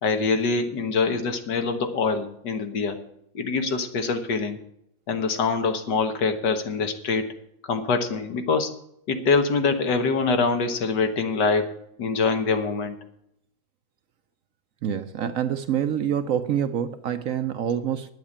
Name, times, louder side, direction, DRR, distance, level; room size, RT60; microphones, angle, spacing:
voice 1, 0.0-3.0 3.3-4.6 5.1-7.3 7.7-8.7 9.1-11.7 12.0-13.0, left 4 dB, 80° left, 1.9 m, -24 dB
voice 2, 14.8-18.1, right 9 dB, 65° right, 0.9 m, -26 dB
9.8 x 8.0 x 8.6 m
omnidirectional pair, 1.8 m